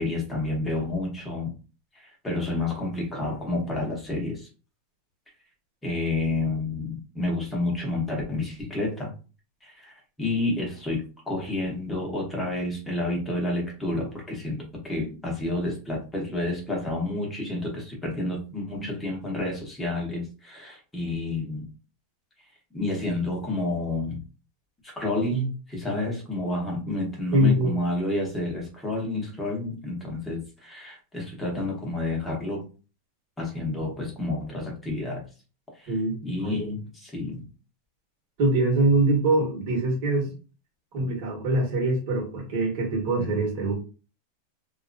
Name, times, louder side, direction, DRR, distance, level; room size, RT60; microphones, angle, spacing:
voice 1, 0.0-1.5 1.9-4.5 5.8-9.1 9.6-21.6 22.7-24.2 24.8-32.7 33.4-35.2 35.8-35.9 36.2-37.4, left 2 dB, 5° left, 1.0 m, -30 dB
voice 2, 27.3-27.7 35.9-36.1 36.4-36.7 38.4-40.3 40.9-43.7, right 2 dB, 45° right, 1.2 m, -23 dB
2.7 x 2.3 x 2.5 m
supercardioid pair, 165°, 0 cm